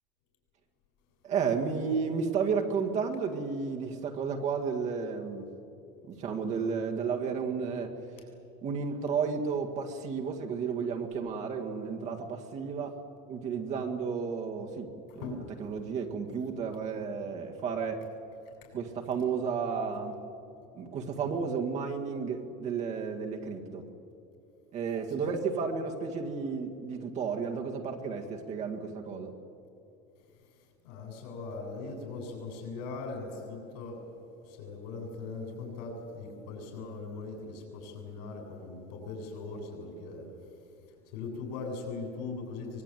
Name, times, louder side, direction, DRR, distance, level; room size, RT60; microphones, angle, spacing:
voice 1, 1.2-5.5 6.1-7.9 8.6-13.0 13.3-15.3 15.6-18.0 18.7-20.2 20.7-23.9 24.7-29.3, right 5 dB, 35° right, 3 dB, 2.0 m, -32 dB
voice 2, 15.1-15.5 18.6-18.7 25.2-25.3 30.8-34.0 34.5-40.3 41.1-42.8, left 3 dB, 90° left, 2 dB, 7.9 m, -40 dB
23.5 x 21.5 x 9.3 m, 2.7 s
cardioid pair, 175°, 21 cm